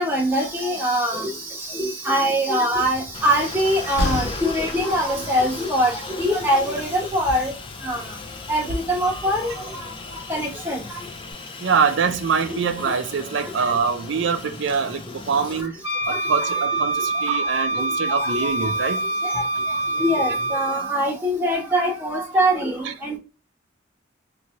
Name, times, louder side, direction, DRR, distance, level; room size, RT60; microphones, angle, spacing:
voice 1, 0.0-7.5 7.8-8.0 8.5-9.9 10.3-11.0 15.6-15.7 16.1-16.9 17.3-17.4 18.2-18.7 19.2-19.3 20.0-23.2, equal, 10° right, 0.9 m, -23 dB
Train, 2.7-11.3, left 2 dB, 85° left, 0.5 m, -35 dB
Aircraft, 3.1-15.6, left 4 dB, 25° left, 0.4 m, -37 dB
voice 2, 11.6-15.7 16.1-19.0 19.7-19.8 22.9-23.0, right 6 dB, 65° right, 0.4 m, -24 dB
Wind instrument woodwind instrument, 15.8-21.0, right 2 dB, 60° left, 0.9 m, -25 dB
3.0 x 2.6 x 2.5 m
head